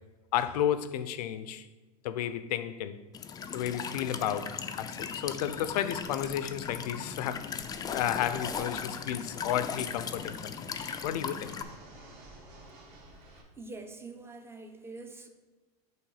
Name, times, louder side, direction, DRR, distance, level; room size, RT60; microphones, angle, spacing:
voice 1, 0.3-1.7 2.0-3.0 3.5-7.6 7.9-11.5, left 10 dB, 75° left, 0.5 m, -32 dB
Walk footsteps / Chirp tweet / Stream, 3.1-11.6, left 6 dB, 20° left, 0.4 m, -38 dB
Fixed-wing aircraft airplane, 6.0-13.4, right 2 dB, 50° right, 1.8 m, -53 dB
voice 2, 13.6-15.3, right 3 dB, 10° right, 0.7 m, -44 dB
7.4 x 3.1 x 5.6 m
supercardioid pair, 115°, 20 cm